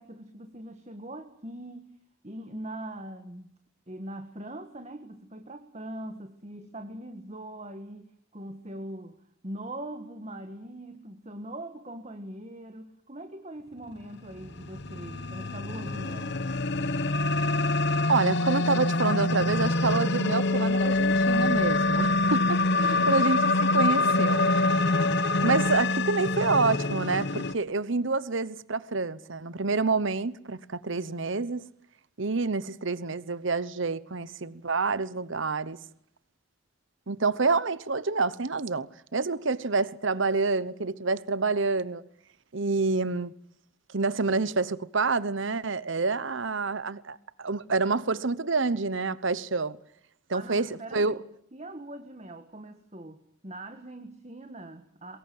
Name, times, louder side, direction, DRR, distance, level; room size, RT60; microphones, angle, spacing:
voice 1, 0.0-1.9 2.2-3.5 3.9-9.2 9.4-16.4 22.6-23.2 50.3-51.2 51.5-55.2, right 1 dB, 30° right, 1.7 m, -41 dB
sound 1, 14.4-27.5, left 2 dB, 55° left, 1.0 m, -25 dB
voice 2, 18.1-22.6 23.0-25.2 25.4-31.6 32.2-35.8 37.1-42.0 42.5-43.3 43.9-49.8 50.3-51.2, right 3 dB, 60° right, 1.0 m, -28 dB
23.5 x 22.0 x 7.8 m
head